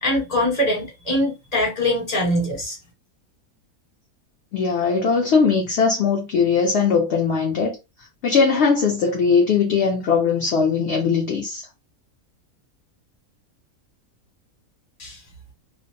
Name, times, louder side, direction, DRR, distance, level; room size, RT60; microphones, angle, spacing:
voice 1, 0.0-2.8 15.0-15.2, left 1 dB, 30° left, 1.2 m, -22 dB
voice 2, 4.5-7.8 8.2-11.6, left 5 dB, 60° left, 0.7 m, -20 dB
2.5 x 2.0 x 2.6 m
omnidirectional pair, 1.5 m